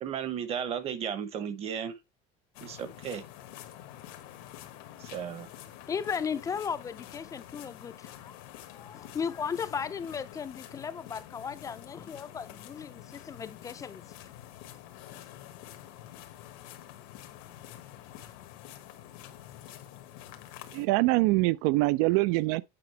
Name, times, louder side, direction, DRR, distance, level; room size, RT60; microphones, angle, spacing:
voice 1, 0.0-2.0 2.6-3.2 5.0-5.5, right 8 dB, 35° right, 0.9 m, -34 dB
sound 1, 2.5-20.9, left 12 dB, 90° left, 1.4 m, -48 dB
voice 2, 5.9-7.9 8.2-8.3 8.7-14.0, left 6 dB, 20° left, 0.4 m, -36 dB
voice 3, 20.7-22.6, right 21 dB, 85° right, 0.5 m, -24 dB
8.7 x 5.1 x 3.3 m
cardioid pair, 165°, 17 cm